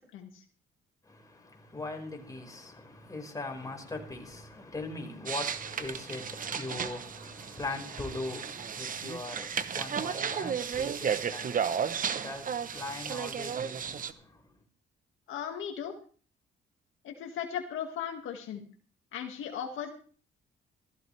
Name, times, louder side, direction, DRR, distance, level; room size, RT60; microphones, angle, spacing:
voice 1, 0.1-0.4 15.3-15.9 17.0-18.7 19.1-19.9, left 8 dB, 85° left, 1.9 m, -37 dB
voice 2, 1.0-14.5, left 2 dB, 15° left, 4.8 m, -41 dB
sound 1, 5.3-14.1, right 7 dB, 45° right, 0.9 m, -34 dB
15.5 x 14.5 x 3.3 m
cardioid pair, 90°, 20 cm